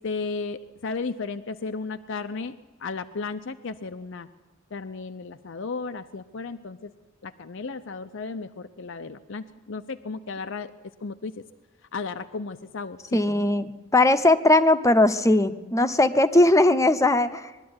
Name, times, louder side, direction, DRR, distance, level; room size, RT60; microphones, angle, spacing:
voice 1, 0.0-2.5 2.8-4.3 4.7-6.9 7.2-10.7 11.0-11.3 11.9-13.5, left 4 dB, 65° left, 9 dB, 0.7 m, -34 dB
voice 2, 13.1-17.5, left 2 dB, 15° left, 10 dB, 0.8 m, -19 dB
21.5 x 13.0 x 9.6 m, 1.2 s
head